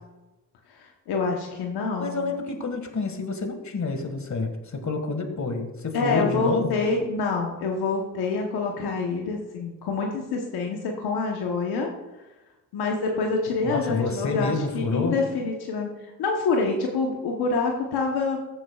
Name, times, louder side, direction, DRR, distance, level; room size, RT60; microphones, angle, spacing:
voice 1, 0.7-2.3 5.9-11.9 12.7-15.9 16.2-18.4, left 4 dB, 85° left, 1 dB, 1.1 m, -26 dB
voice 2, 2.0-6.9 13.6-15.2, left 3 dB, 50° left, 6 dB, 1.8 m, -28 dB
14.5 x 7.5 x 2.4 m, 1.1 s
supercardioid pair, 50°, 37 cm